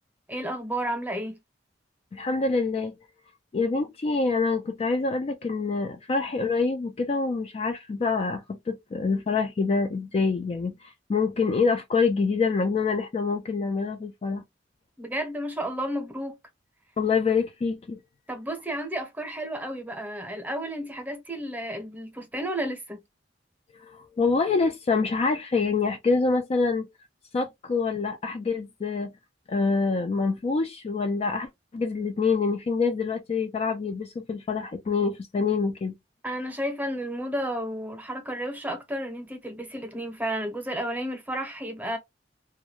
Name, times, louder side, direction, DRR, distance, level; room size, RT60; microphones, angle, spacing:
voice 1, 0.3-1.4 15.0-16.4 18.3-23.0 36.2-42.0, right 1 dB, 10° right, 0.7 m, -32 dB
voice 2, 2.1-3.0 3.5-14.4 17.0-18.0 23.7-26.9 27.3-29.1 29.5-35.9, left 4 dB, 35° left, 0.3 m, -26 dB
2.3 x 2.1 x 2.9 m
head